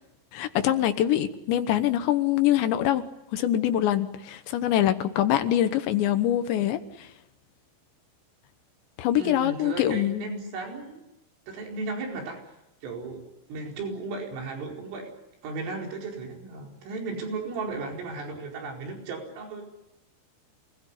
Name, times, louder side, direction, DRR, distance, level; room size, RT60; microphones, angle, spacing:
voice 1, 0.3-3.0 3.3-7.1 9.0-10.3, left 12 dB, 75° left, 9 dB, 3.1 m, -24 dB
voice 2, 9.1-11.0 11.5-12.5 12.8-13.2 13.5-15.1 15.4-19.6, right 3 dB, 85° right, 1 dB, 7.3 m, -35 dB
28.0 x 20.5 x 9.8 m, 0.94 s
omnidirectional pair, 5.6 m